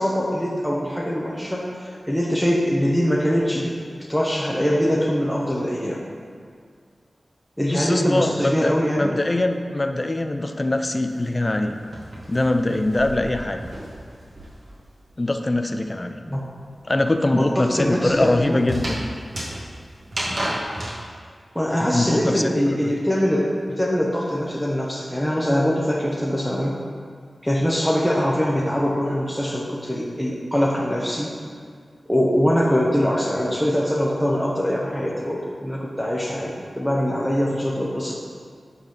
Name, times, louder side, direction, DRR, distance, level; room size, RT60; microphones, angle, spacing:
voice 1, 0.0-3.8 4.1-6.0 7.6-9.2 16.2-16.4 17.3-18.6 21.5-26.8 27.4-31.3 32.1-38.1, equal, ahead, -4 dB, 0.9 m, -23 dB
voice 2, 7.7-11.8 12.3-13.6 15.2-16.2 16.9-19.0 21.8-22.6, left 2 dB, 30° left, 6 dB, 0.6 m, -23 dB
sound 1, 11.1-14.8 15.1-21.0, right 1 dB, 55° right, 2.1 m, -33 dB
9.1 x 4.1 x 7.1 m, 2.1 s
wide cardioid pair, 80°, 0 cm